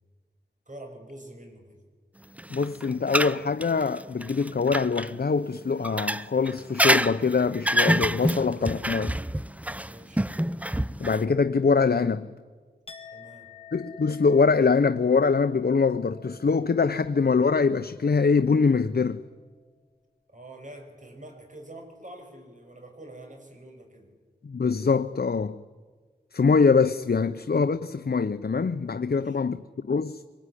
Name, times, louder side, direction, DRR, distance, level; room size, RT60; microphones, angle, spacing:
voice 1, 0.7-1.8 9.9-10.3 13.1-13.5 20.3-24.1 29.0-29.4, right 1 dB, 45° right, 6.5 m, -46 dB
sound 1, 2.4-5.1 5.8-11.2, equal, 10° right, 0.7 m, -26 dB
voice 2, 2.5-9.2 11.0-12.3 13.7-19.2 24.4-25.6 26.3-30.2, left 5 dB, 65° left, 0.8 m, -23 dB
Chink clink, 12.9-18.8 19.1-19.5, left 6 dB, 30° left, 2.9 m, -51 dB
24.5 x 21.5 x 10.0 m
wide cardioid pair, 60°, 18 cm